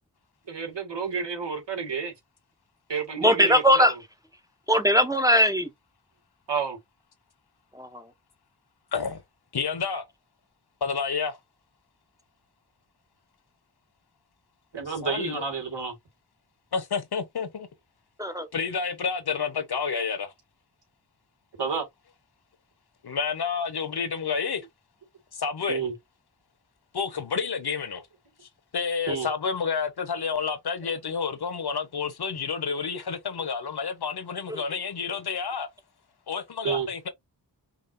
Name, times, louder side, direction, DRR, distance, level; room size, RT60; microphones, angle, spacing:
voice 1, 0.5-2.1 2.9-3.9 6.5-6.8 14.7-15.9 21.6-21.8 25.7-25.9 29.1-29.3 36.6-36.9, right 6 dB, 85° right, 1.7 m, -30 dB
voice 2, 3.2-3.9 4.7-5.7 7.7-8.0 18.2-18.5 34.5-34.6, equal, 10° right, 0.6 m, -20 dB
voice 3, 8.9-9.2 9.5-10.0 10.8-11.4 15.0-15.4 16.7-17.7 18.5-20.3 23.0-24.7 25.3-25.8 26.9-28.0 28.7-35.7 36.3-37.1, left 5 dB, 65° left, 1.0 m, -29 dB
5.2 x 2.5 x 2.6 m
wide cardioid pair, 75°, 42 cm